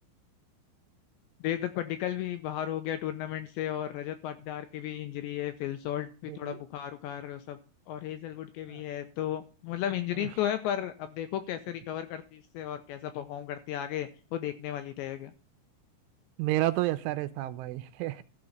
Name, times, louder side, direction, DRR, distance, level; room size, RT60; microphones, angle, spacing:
voice 1, 1.4-7.6 7.9-15.3, left 11 dB, 75° left, 2.7 m, -34 dB
voice 2, 6.3-6.6 8.7-8.8 10.2-10.3 16.4-18.2, right 16 dB, 80° right, 3.0 m, -31 dB
13.0 x 5.4 x 7.9 m
omnidirectional pair, 5.9 m